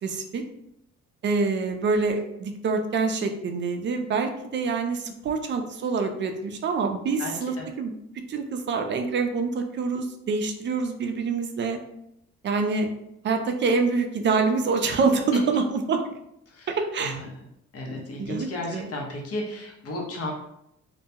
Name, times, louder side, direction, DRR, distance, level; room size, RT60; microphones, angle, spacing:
voice 1, 0.0-0.4 1.2-7.9 8.3-11.8 12.4-12.9 13.2-16.1 16.7-17.2 18.2-18.9, right 4 dB, 40° right, 5 dB, 0.4 m, -26 dB
voice 2, 7.2-7.7 16.5-17.4 17.7-20.3, left 1 dB, 50° left, -1 dB, 0.8 m, -34 dB
2.2 x 2.2 x 2.8 m, 0.79 s
cardioid pair, 90°, 30 cm